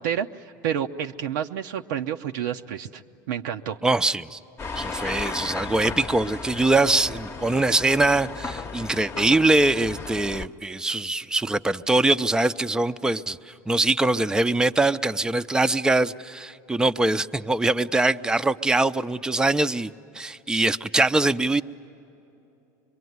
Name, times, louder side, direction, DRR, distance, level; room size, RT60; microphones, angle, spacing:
voice 1, 0.0-3.0 3.3-3.8, right 9 dB, 85° right, 3 dB, 0.6 m, -29 dB
voice 2, 3.8-4.4 4.8-19.9 20.1-21.6, right 2 dB, 10° right, 10 dB, 0.5 m, -23 dB
sound 1, 4.6-10.5, left 4 dB, 25° left, 0.9 m, -34 dB
25.5 x 23.0 x 9.4 m, 2.9 s
supercardioid pair, 105°, 9 cm